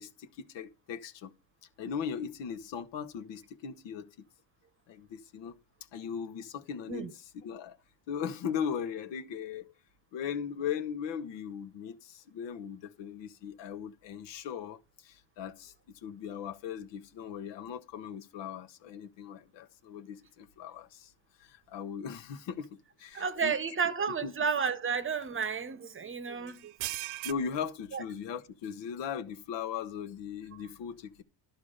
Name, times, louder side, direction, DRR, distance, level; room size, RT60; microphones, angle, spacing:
voice 1, 0.0-1.3 1.8-4.1 4.9-5.5 5.9-7.1 7.4-7.8 8.1-9.7 10.1-15.7 16.0-21.1 21.4-23.6 24.2-24.3 27.2-31.2, left 7 dB, 70° left, 1.5 m, -38 dB
sound 1, 22.6-22.7 23.3-23.4 25.2-25.4 26.5-27.3, right 18 dB, 85° right, 0.7 m, -37 dB
voice 2, 23.1-26.7 27.9-28.0, right 6 dB, 25° right, 1.0 m, -32 dB
12.0 x 4.7 x 6.6 m
cardioid pair, 105°, 45 cm